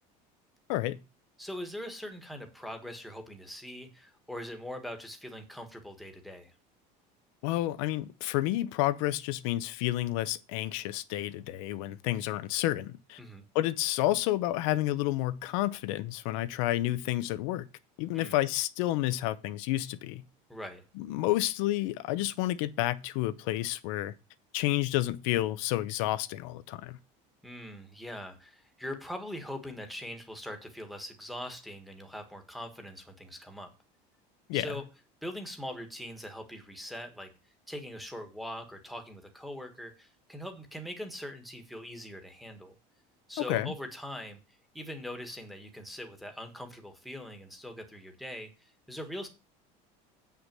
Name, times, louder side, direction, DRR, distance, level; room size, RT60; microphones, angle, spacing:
voice 1, 0.7-1.0 7.4-13.2 13.5-17.7 18.0-20.2 21.0-24.1 24.5-27.0 34.5-34.7 43.5-43.7, left 15 dB, 80° left, 0.9 m, -30 dB
voice 2, 1.4-6.5 13.2-13.4 18.1-18.4 20.5-20.8 27.4-33.7 34.5-34.8 35.2-37.3 37.7-42.7 43.3-44.4 44.7-49.3, equal, ahead, 1.5 m, -42 dB
8.2 x 5.8 x 7.6 m
cardioid pair, 170°, 17 cm